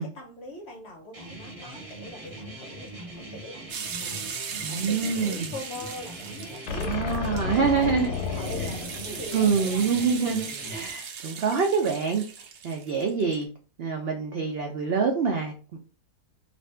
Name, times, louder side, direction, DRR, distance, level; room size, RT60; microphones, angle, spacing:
voice 1, 0.0-4.4 4.7-10.3 10.6-10.8, left 1 dB, 55° left, 2 dB, 0.8 m, -42 dB
sound 1, 1.1-10.9, right 1 dB, 25° right, 1.2 m, -41 dB
sound 2, 3.7-13.4, right 6 dB, 65° right, 1.1 m, -38 dB
voice 2, 4.6-5.5 6.8-8.1 9.3-12.3 12.6-13.5 13.8-15.8, right 5 dB, 85° right, 2 dB, 0.5 m, -26 dB
sound 3, 6.7-10.0, left 5 dB, 85° left, 1.1 m, -32 dB
2.6 x 2.5 x 3.2 m, 0.37 s
omnidirectional pair, 1.7 m